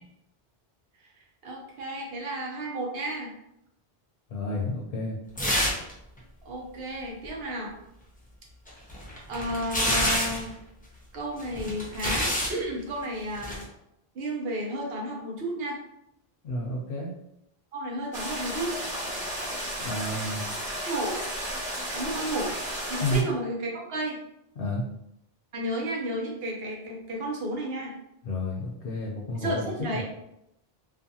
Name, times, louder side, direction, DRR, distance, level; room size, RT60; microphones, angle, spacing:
voice 1, 1.4-3.3 6.4-7.7 9.3-10.6 11.1-13.6 14.1-15.8 17.7-18.7 20.8-21.2 21.9-22.5 22.9-24.2 25.5-27.9 29.3-30.0, right 1 dB, 70° right, -1 dB, 0.9 m, -32 dB
voice 2, 4.3-5.2 16.4-17.1 19.8-20.4 23.0-23.2 24.6-24.8 28.2-30.0, left 1 dB, 65° left, -3 dB, 0.7 m, -30 dB
sound 1, 5.4-5.9 6.2-6.3 8.7-10.5 11.4-12.6 13.4-13.6, left 1 dB, 10° left, 0.5 m, -27 dB
sound 2, 18.1-23.2, equal, 10° right, 1.1 m, -33 dB
2.4 x 2.4 x 2.6 m, 0.81 s
omnidirectional pair, 1.0 m